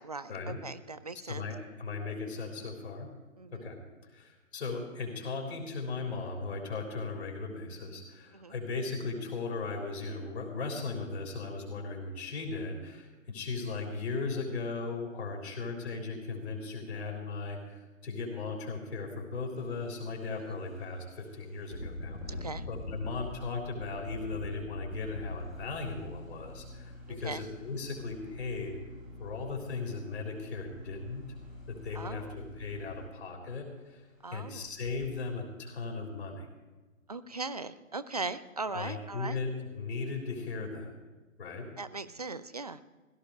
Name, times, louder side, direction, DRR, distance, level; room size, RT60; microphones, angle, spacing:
voice 1, 0.0-1.5 3.4-3.7 8.3-8.5 22.3-22.6 27.1-27.4 31.9-32.3 34.2-34.7 37.1-39.4 41.8-42.8, right 3 dB, 30° right, 15 dB, 0.4 m, -39 dB
voice 2, 1.3-3.1 3.5-3.8 4.1-22.4 22.7-28.8 29.2-31.2 31.7-34.0 34.3-36.5 38.7-40.9 41.4-41.7, left 4 dB, 50° left, 1 dB, 3.8 m, -37 dB
Engine, 19.6-19.8 20.2-20.4 21.6-27.4 28.3-28.4 28.8-29.6 31.3-31.5 31.8-31.9 32.4-32.5 32.8-33.3 33.9-34.0 34.6-35.1, left 2 dB, 75° left, 1.7 m, -42 dB
sound 1, 24.9-33.1, left 1 dB, 15° right, 1.9 m, -49 dB
16.5 x 13.5 x 4.9 m, 1.3 s
figure-of-eight pair, 135°, 40 cm